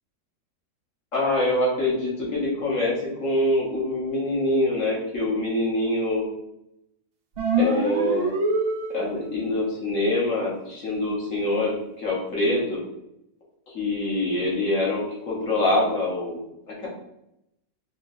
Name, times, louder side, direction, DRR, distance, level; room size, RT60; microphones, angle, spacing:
voice 1, 1.1-6.3 7.6-8.4 8.9-12.8 13.7-16.4 16.7-16.9, left 1 dB, 55° left, -4 dB, 1.6 m, -25 dB
sound 1, 7.4-9.3, right 2 dB, 65° right, 0.6 m, -25 dB
4.5 x 2.9 x 2.7 m, 0.82 s
omnidirectional pair, 1.7 m